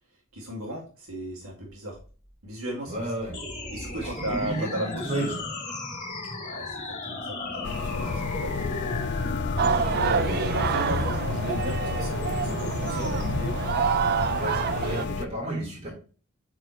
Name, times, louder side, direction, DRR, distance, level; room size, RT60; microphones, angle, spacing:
voice 1, 0.3-2.0 2.4-3.1 3.7-5.3 6.4-8.9 9.3-9.5 9.9-13.5, right 1 dB, 75° right, 2.0 m, -35 dB
voice 2, 2.9-3.4 3.9-5.4 7.6-8.4 9.5-10.0 14.3-15.9, right 1 dB, 30° right, 3.7 m, -33 dB
sound 1, 3.3-13.3, left 2 dB, 35° left, 1.8 m, -36 dB
sound 2, 7.6-15.2, left 5 dB, 55° left, 0.4 m, -31 dB
sound 3, 9.6-15.1, right 7 dB, 45° right, 0.4 m, -27 dB
8.1 x 4.9 x 3.0 m
head